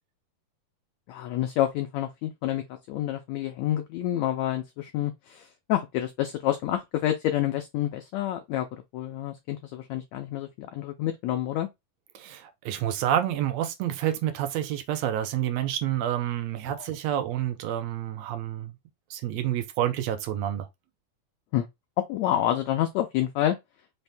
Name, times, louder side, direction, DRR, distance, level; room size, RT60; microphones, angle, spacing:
voice 1, 1.1-8.7 8.9-11.7 16.7-16.9 21.5-21.7 22.1-23.6, left 12 dB, 85° left, 1.5 m, -28 dB
voice 2, 12.1-18.7 19.1-20.7, right 11 dB, 80° right, 1.5 m, -28 dB
5.7 x 2.7 x 3.3 m
omnidirectional pair, 3.9 m